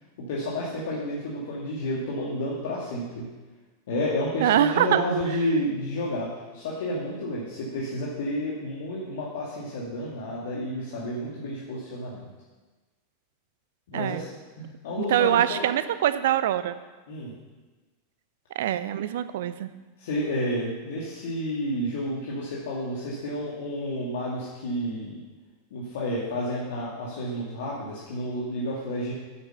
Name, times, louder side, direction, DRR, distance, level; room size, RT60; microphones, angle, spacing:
voice 1, 0.2-3.3 3.9-12.3 13.9-14.3 14.6-15.6 17.1-17.3 20.0-25.2 25.7-29.1, equal, 60° left, -5 dB, 2.2 m, -30 dB
voice 2, 4.4-5.0 13.9-14.2 15.1-16.8 18.5-19.7, right 11 dB, 60° right, 13 dB, 0.6 m, -23 dB
9.4 x 7.8 x 6.7 m, 1.2 s
figure-of-eight pair, 90°, 0 cm